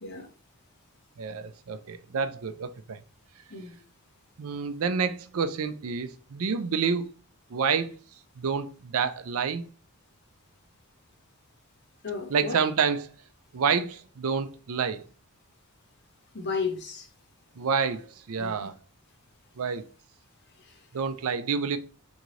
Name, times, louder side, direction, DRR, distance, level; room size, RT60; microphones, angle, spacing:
voice 1, 1.2-3.0 4.4-7.0 7.5-7.9 8.4-9.6 12.3-13.1 13.5-15.0 17.6-18.0 18.3-18.7 19.6-19.9 20.9-21.8, right 6 dB, 70° right, 0.5 m, -28 dB
voice 2, 12.0-12.6 16.3-17.1 18.4-18.7 20.6-20.8, left 5 dB, 50° left, 1.0 m, -34 dB
3.9 x 3.6 x 3.1 m
head